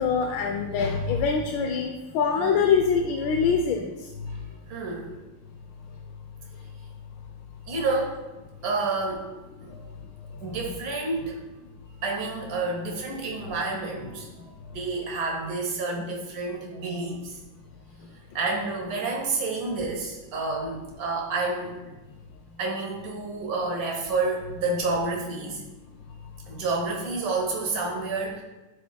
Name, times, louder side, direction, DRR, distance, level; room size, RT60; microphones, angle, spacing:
voice 1, 0.0-3.9 10.4-10.6, left 6 dB, 80° left, 4 dB, 1.4 m, -24 dB
voice 2, 2.4-2.7 4.3-5.1 7.7-8.2 8.6-9.3 9.6-9.7 10.4-11.4 12.0-14.3 14.7-17.4 18.3-21.9 22.6-25.6 26.5-28.4, right 3 dB, 50° right, -1 dB, 1.9 m, -29 dB
12.0 x 8.3 x 2.2 m, 1.1 s
omnidirectional pair, 2.1 m